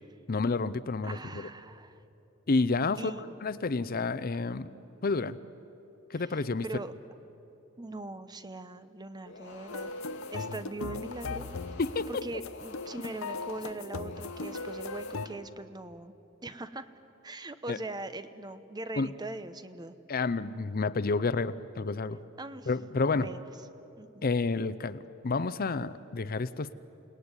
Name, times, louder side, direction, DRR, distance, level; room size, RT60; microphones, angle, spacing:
voice 1, 0.3-1.5 2.5-4.7 5.0-5.4 6.1-6.6 11.8-12.1 17.7-17.8 19.0-19.1 20.1-22.2 22.7-23.3 24.2-26.7, left 3 dB, 45° left, 15 dB, 0.6 m, -30 dB
voice 2, 1.0-2.0 3.0-3.4 6.2-6.9 7.8-9.9 10.3-11.5 12.1-16.1 16.4-16.9 17.2-19.9 22.4-22.7 23.1-23.4 24.0-24.2, right 2 dB, 20° right, 11 dB, 0.9 m, -41 dB
sound 1, 9.3-15.4, left 2 dB, 65° left, 2.6 m, -48 dB
sound 2, 9.7-15.3, left 3 dB, 85° left, 0.8 m, -38 dB
29.0 x 18.0 x 9.7 m, 3.0 s
head